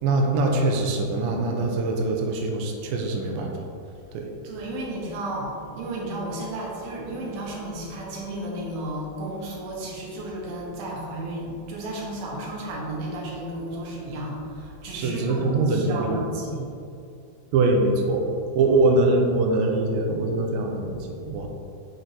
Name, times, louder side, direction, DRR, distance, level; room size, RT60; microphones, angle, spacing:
voice 1, 0.0-3.6 4.1-4.3 14.9-16.3 17.5-18.2 18.6-21.5, right 2 dB, 85° right, 1 dB, 2.0 m, -23 dB
voice 2, 4.4-16.7, right 1 dB, 70° right, -3 dB, 2.7 m, -33 dB
6.6 x 4.5 x 4.2 m, 2.5 s
omnidirectional pair, 4.8 m